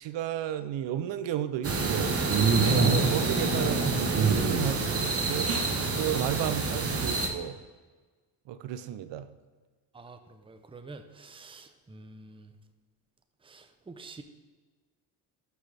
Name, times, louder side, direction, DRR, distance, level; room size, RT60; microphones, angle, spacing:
voice 1, 0.0-2.1 2.7-5.5 6.0-7.6 8.5-9.3, right 11 dB, 65° right, 12 dB, 0.7 m, -33 dB
sound 1, 1.6-7.3, right 4 dB, 30° right, 1.3 m, -26 dB
voice 2, 9.9-12.5 13.4-14.2, right 3 dB, 10° right, 7 dB, 0.7 m, -47 dB
12.0 x 6.3 x 3.4 m, 1.3 s
cardioid pair, 100°, 47 cm